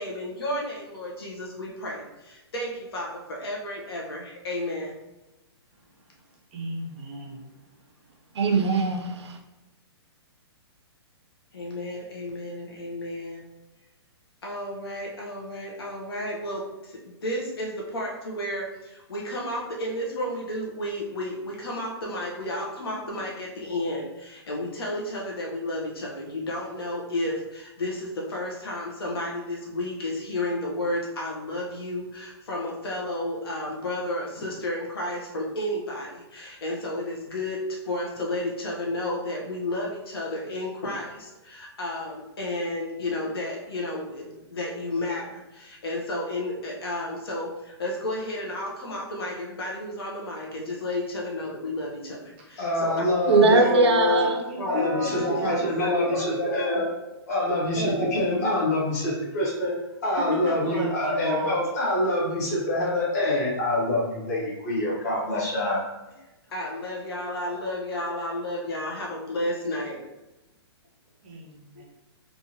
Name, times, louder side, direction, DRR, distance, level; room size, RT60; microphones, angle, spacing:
voice 1, 0.0-5.0 11.5-13.5 14.4-52.2 52.8-53.6 54.6-56.9 57.8-58.2 66.5-70.0 71.8-71.9, left 1 dB, 60° left, 1.1 m, -32 dB
voice 2, 6.5-7.5 53.6-55.6 60.0-61.6 71.2-71.8, right 2 dB, 25° right, 0.6 m, -35 dB
voice 3, 8.4-9.4 53.3-54.4, right 3 dB, 80° right, 0.6 m, -20 dB
voice 4, 52.6-54.3 54.7-56.9 57.3-59.8 60.0-65.8, left 1 dB, 35° left, 1.1 m, -26 dB
3.5 x 2.5 x 2.9 m
hypercardioid pair, 175°, 14 cm